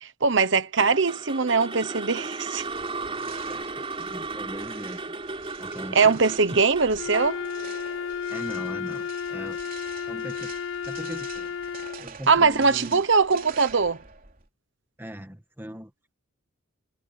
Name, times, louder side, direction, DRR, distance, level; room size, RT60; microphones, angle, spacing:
voice 1, 0.0-2.6 5.9-7.4 12.3-14.0, right 4 dB, 65° right, 1.1 m, -21 dB
sound 1, 0.8-9.0, right 3 dB, 30° right, 4.3 m, -36 dB
sound 2, 2.6-14.5, right 6 dB, 45° right, 3.2 m, -46 dB
voice 2, 3.3-5.0 5.6-6.2 6.5-6.6 8.3-9.6 10.1-10.5 10.9-11.6 12.0-13.0 15.0-15.9, equal, 10° right, 2.0 m, -40 dB
Wind instrument woodwind instrument, 6.9-12.1, left 7 dB, 75° left, 0.7 m, -33 dB
head